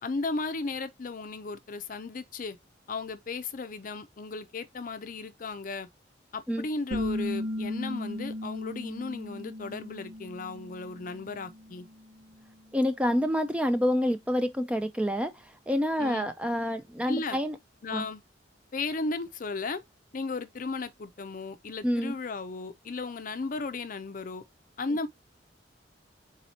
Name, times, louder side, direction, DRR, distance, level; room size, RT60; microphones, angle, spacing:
voice 1, 0.0-2.6 2.9-5.9 6.3-11.9 16.0-16.3 17.1-17.4 17.8-18.2 18.7-19.8 20.1-24.4 24.8-25.1, left 3 dB, 45° left, 0.5 m, -35 dB
sound 1, 6.9-12.3, left 1 dB, 70° right, 1.1 m, -36 dB
voice 2, 12.7-17.6 17.9-18.1 21.8-22.1, equal, 5° right, 0.4 m, -28 dB
4.0 x 2.9 x 4.1 m
head